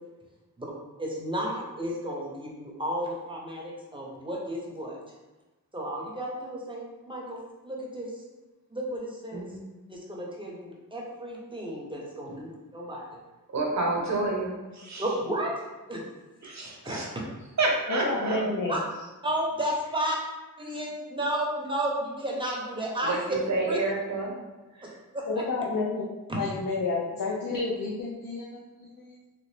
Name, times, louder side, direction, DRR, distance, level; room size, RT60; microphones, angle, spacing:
voice 1, 1.0-5.0 5.7-8.2 8.7-9.5 9.9-13.1 15.0-16.0 16.8-17.0 18.7-18.8 19.2-20.2 20.6-23.4 23.7-23.8 24.8-25.4 26.3-26.4, right 1 dB, 15° right, -3 dB, 0.8 m, -33 dB
voice 2, 9.3-9.6 12.3-12.4 13.5-15.2 16.4-17.2 17.6-18.4 20.7-20.8 23.0-24.3 24.8-24.9, right 2 dB, 55° right, -1 dB, 0.8 m, -29 dB
voice 3, 17.9-18.7 25.3-26.0 26.3-29.2, left 3 dB, 75° left, -3 dB, 0.6 m, -30 dB
3.3 x 2.5 x 3.3 m, 1.1 s
wide cardioid pair, 85°, 33 cm